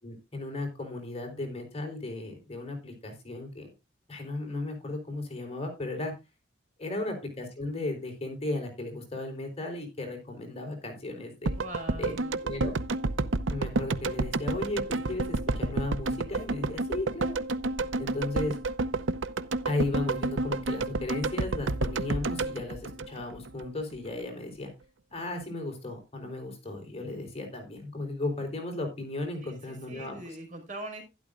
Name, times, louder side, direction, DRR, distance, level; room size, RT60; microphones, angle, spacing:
voice 1, 0.0-3.7 4.1-6.1 6.8-11.5 12.0-12.1 12.4-12.8 13.5-17.4 18.0-18.6 19.7-24.7 25.1-30.4, left 2 dB, 35° left, 4 dB, 4.0 m, -35 dB
voice 2, 6.8-7.1 11.5-12.4 29.4-31.0, right 1 dB, 45° right, 3 dB, 5.1 m, -42 dB
sound 1, 11.5-23.6 23.9-24.0, right 3 dB, 85° right, 0.7 m, -30 dB
12.0 x 12.0 x 2.5 m, 0.25 s
head